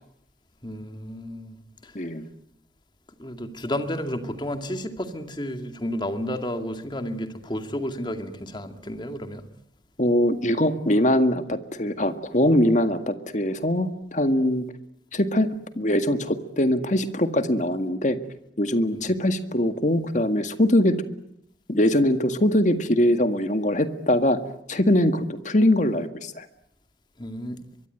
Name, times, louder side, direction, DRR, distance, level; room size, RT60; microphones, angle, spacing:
voice 1, 0.6-2.0 3.2-9.5 18.9-19.1 27.2-27.6, equal, 25° left, 7 dB, 2.3 m, -32 dB
voice 2, 2.0-2.3 10.0-14.6 15.1-15.5 15.8-18.2 18.6-21.0 21.7-24.4 24.7-26.5, left 1 dB, 40° left, 9 dB, 1.9 m, -22 dB
23.5 x 23.5 x 9.3 m, 0.75 s
head